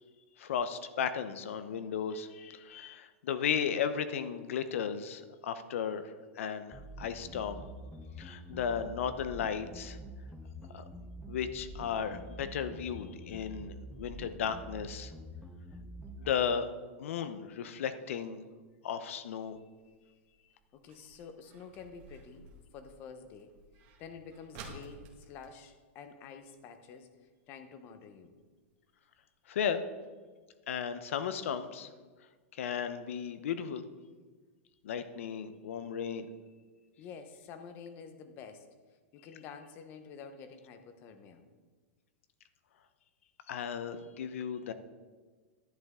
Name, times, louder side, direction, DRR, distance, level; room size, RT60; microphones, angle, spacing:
voice 1, 0.4-7.6 8.2-10.0 10.7-10.8 11.3-15.1 16.2-16.7 17.0-18.4 18.8-19.6 29.5-29.8 30.7-31.9 32.5-33.8 34.8-36.3 43.5-44.7, left 7 dB, 70° left, 11 dB, 0.8 m, -35 dB
sound 1, 6.7-16.3, equal, ahead, 0.6 m, -46 dB
sound 2, 17.5-26.7 27.0-27.1 27.4-27.7 28.2-28.3 28.8-28.9 29.2-29.3 29.7-29.8, right 3 dB, 40° right, 1.7 m, -54 dB
voice 2, 20.7-23.6 24.0-27.2 27.5-28.4 37.0-38.7 39.1-41.4, left 6 dB, 30° left, 9 dB, 0.9 m, -49 dB
11.0 x 10.0 x 3.7 m, 1.4 s
supercardioid pair, 165°, 7 cm